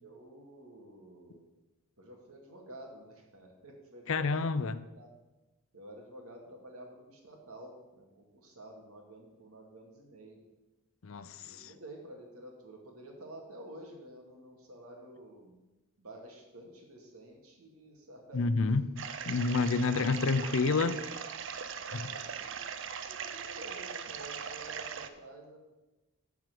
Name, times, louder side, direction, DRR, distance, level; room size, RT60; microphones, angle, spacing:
voice 1, 0.0-1.5 2.0-4.6 4.9-5.1 5.7-10.4 11.3-15.6 16.0-18.6 19.5-19.9 21.8-25.7, right 1 dB, 80° right, 2.2 m, -50 dB
voice 2, 4.1-4.8 11.0-11.7 18.3-18.9 19.3-21.0 21.9-22.1, left 4 dB, 65° left, 0.5 m, -29 dB
sound 1, 19.0-25.1, right 7 dB, 55° right, 0.6 m, -40 dB
9.7 x 4.7 x 7.7 m
head